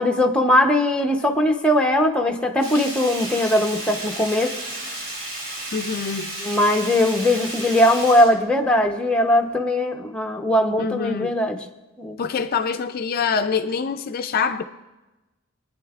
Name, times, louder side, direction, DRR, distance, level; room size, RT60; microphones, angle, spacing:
voice 1, 0.0-4.6 6.4-11.6 12.0-12.2, left 1 dB, 5° left, 0.7 m, -20 dB
Sink (filling or washing), 2.6-9.1 9.5-9.6, right 1 dB, 45° right, 3.5 m, -33 dB
voice 2, 5.7-6.3 10.8-11.4 12.2-14.6, left 6 dB, 45° left, 0.4 m, -25 dB
23.5 x 9.4 x 2.4 m
head